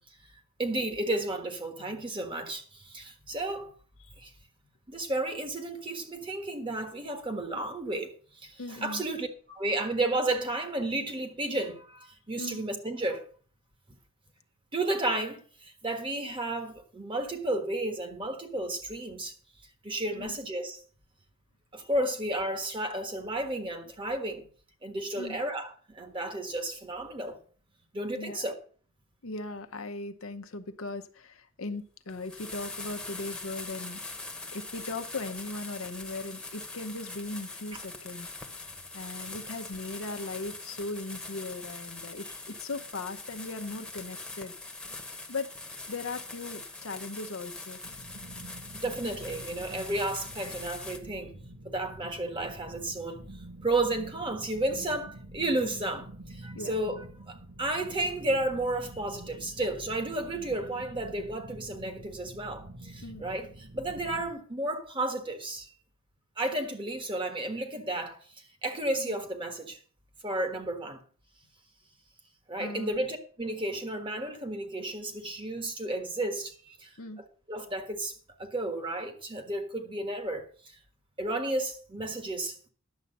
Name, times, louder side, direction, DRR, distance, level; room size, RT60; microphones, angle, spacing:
voice 1, 0.6-3.7 4.2-4.3 4.9-13.2 14.7-19.3 19.8-20.8 21.7-24.4 24.8-27.4 27.9-28.5 48.8-51.3 51.6-53.2 53.6-65.7 66.4-68.2 68.6-69.8 70.2-71.0 72.5-76.9 77.2-80.5 81.2-82.7, right 1 dB, 25° right, 1.4 m, -32 dB
voice 2, 8.6-9.0 12.4-12.6 20.1-20.4 25.1-25.4 28.1-28.4 29.2-34.0 34.5-38.3 38.9-44.5 45.3-45.5 45.9-47.8 54.7-54.8 56.5-56.7 63.0-63.2 69.0-69.1 72.6-73.0 77.0-77.2, left 3 dB, 75° left, 0.9 m, -38 dB
sound 1, 32.1-51.0, left 3 dB, 5° left, 1.2 m, -42 dB
sound 2, 47.8-64.3, right 1 dB, 75° right, 1.4 m, -47 dB
10.5 x 7.3 x 5.5 m
head